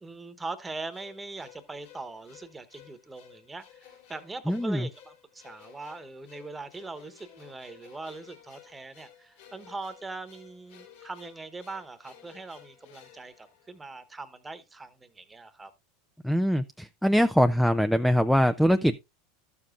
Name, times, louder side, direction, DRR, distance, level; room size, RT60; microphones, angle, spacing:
voice 1, 0.0-15.7, right 3 dB, 15° right, 1.1 m, -41 dB
sound 1, 0.9-14.2, left 9 dB, 70° left, 4.3 m, -55 dB
voice 2, 4.5-4.9 16.2-19.0, equal, ahead, 0.4 m, -23 dB
12.5 x 7.0 x 2.5 m
hypercardioid pair, 90°, 0 cm